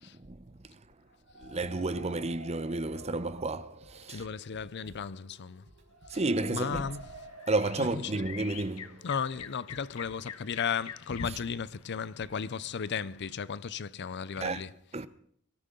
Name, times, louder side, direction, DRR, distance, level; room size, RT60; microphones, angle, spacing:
sound 1, 1.1-10.9, right 2 dB, 85° right, 2.0 m, -52 dB
voice 1, 1.4-4.2 6.1-6.8 7.5-8.9 14.4-14.6 14.9-15.1, right 2 dB, 30° right, 0.7 m, -31 dB
Drum kit / Drum, 3.0-10.3, equal, 55° right, 4.9 m, -58 dB
voice 2, 4.1-5.6 6.1-6.2 6.5-7.1 7.8-8.2 9.0-14.7, left 6 dB, 55° left, 0.5 m, -35 dB
sound 2, 6.7-13.3, left 8 dB, 80° left, 0.9 m, -47 dB
23.5 x 13.5 x 3.9 m
head